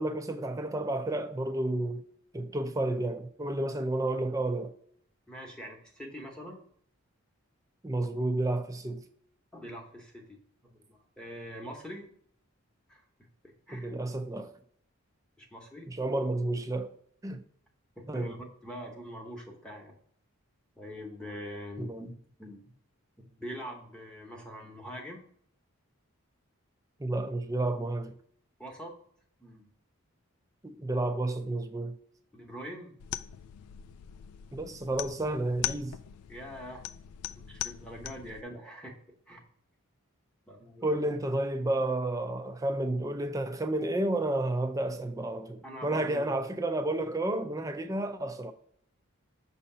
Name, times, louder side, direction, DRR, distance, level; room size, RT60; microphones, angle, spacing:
voice 1, 0.0-2.0 2.3-4.7 7.8-9.0 13.7-14.5 15.9-16.9 17.2-17.4 18.1-18.4 21.8-22.0 27.0-28.1 30.6-32.0 34.5-35.9 40.8-48.5, right 2 dB, 15° right, 0.4 m, -31 dB
voice 2, 5.3-6.6 9.5-12.1 12.9-13.9 15.4-15.9 18.0-18.4 18.6-20.0 20.8-22.1 22.4-22.7 23.2-25.2 28.6-28.9 29.4-29.7 32.3-33.0 36.3-36.9 37.5-39.0 39.3-39.4 40.5-40.9 45.6-46.4, equal, 5° left, 0.8 m, -44 dB
sound 1, 33.0-38.4, left 12 dB, 80° left, 0.3 m, -40 dB
6.3 x 2.8 x 5.4 m
head